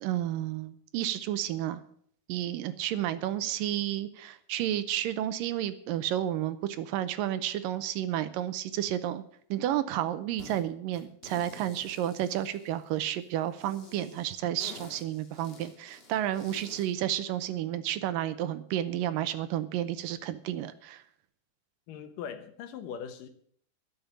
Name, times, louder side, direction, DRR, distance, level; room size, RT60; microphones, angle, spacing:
voice 1, 0.0-1.8 2.3-9.2 9.5-21.0, right 12 dB, 80° right, 12 dB, 2.3 m, -31 dB
sound 1, 10.4-10.6 10.9-13.1 13.6-16.9, left 3 dB, 20° left, 1.6 m, -50 dB
voice 2, 21.9-23.3, left 7 dB, 70° left, 9 dB, 2.6 m, -40 dB
12.5 x 7.3 x 9.0 m, 0.63 s
omnidirectional pair, 4.1 m